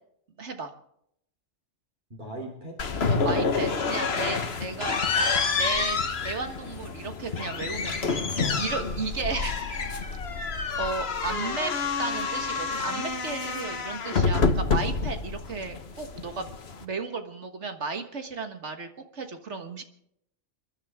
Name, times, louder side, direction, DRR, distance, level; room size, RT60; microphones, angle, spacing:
voice 1, 0.4-0.7 3.1-8.2 8.6-10.1 10.8-16.5 16.8-19.8, right 4 dB, 65° right, 6 dB, 1.8 m, -34 dB
voice 2, 2.1-3.5 8.4-8.7, right 1 dB, 40° right, -2 dB, 3.4 m, -40 dB
sound 1, 2.8-16.8, left 4 dB, 55° left, 1.5 m, -28 dB
29.0 x 11.5 x 3.6 m, 0.73 s
omnidirectional pair, 1.3 m